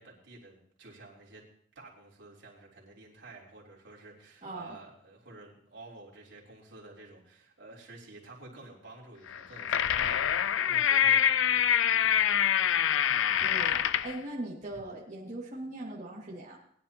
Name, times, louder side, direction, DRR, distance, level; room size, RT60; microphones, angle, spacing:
voice 1, 0.0-1.4 1.8-12.9, right 2 dB, 70° right, -4 dB, 3.5 m, -51 dB
voice 2, 4.4-4.8 13.4-16.6, right 1 dB, 40° right, -6 dB, 2.2 m, -40 dB
sound 1, 9.3-14.2, left 9 dB, 85° left, 0.4 m, -25 dB
20.5 x 11.0 x 3.0 m, 0.64 s
head